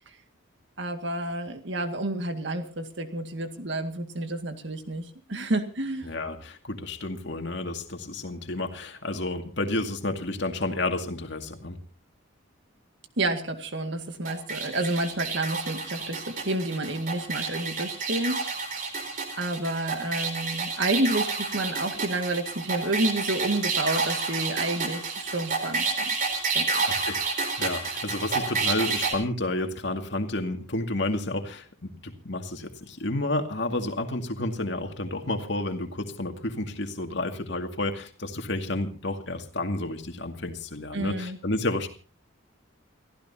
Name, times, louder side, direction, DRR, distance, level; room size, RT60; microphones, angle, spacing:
voice 1, 0.8-6.1 13.2-18.4 18.8-19.1 19.4-26.1 26.5-26.8 40.9-41.4, right 2 dB, 60° right, 7 dB, 2.0 m, -30 dB
voice 2, 6.0-11.8 26.9-41.9, left 2 dB, 55° left, 5 dB, 2.3 m, -31 dB
sound 1, 14.3-29.1, right 4 dB, 40° right, 4.0 m, -30 dB
29.5 x 15.5 x 2.8 m, 0.37 s
head